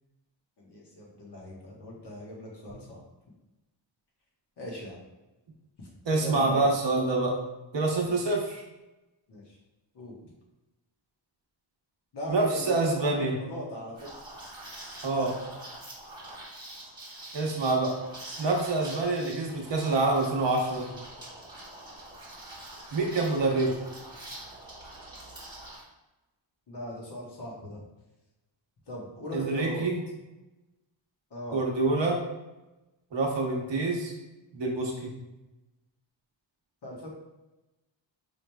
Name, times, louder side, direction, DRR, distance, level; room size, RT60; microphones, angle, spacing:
voice 1, 0.6-3.0 4.6-5.0 6.1-6.7 8.0-8.2 9.3-9.6 9.9-10.3 12.1-14.1 26.7-27.8 28.9-29.8 31.3-31.6 36.8-37.1, left 1 dB, 60° left, -3 dB, 1.2 m, -39 dB
voice 2, 6.1-7.4 7.7-8.6 12.3-13.3 15.0-15.3 17.3-17.9 18.4-20.9 22.9-23.7 29.3-30.0 31.5-32.2 33.1-34.1 34.5-35.1, right 3 dB, 65° right, 0 dB, 0.9 m, -26 dB
Liquid, 14.0-25.8, right 1 dB, 10° right, 1.2 m, -45 dB
4.7 x 3.1 x 2.2 m, 1.0 s
wide cardioid pair, 120°, 46 cm